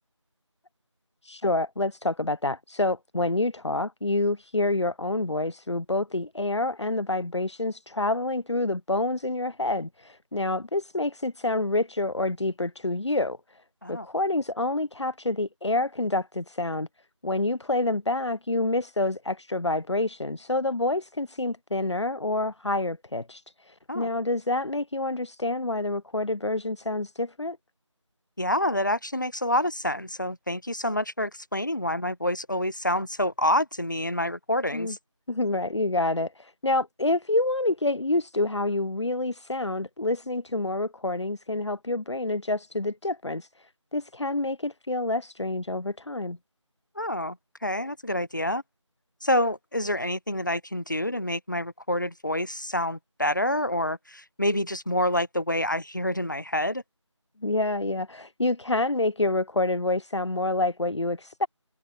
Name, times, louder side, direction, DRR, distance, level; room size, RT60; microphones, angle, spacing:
voice 1, 1.2-13.4 13.9-16.9 17.2-27.6 34.7-35.0 35.3-46.4 57.4-61.5, left 2 dB, 65° left, 0.7 m, -27 dB
voice 2, 28.4-35.0 47.0-47.4 47.6-48.6 49.2-56.8, left 1 dB, 40° left, 1.0 m, -27 dB
figure-of-eight pair, 175°, 16 cm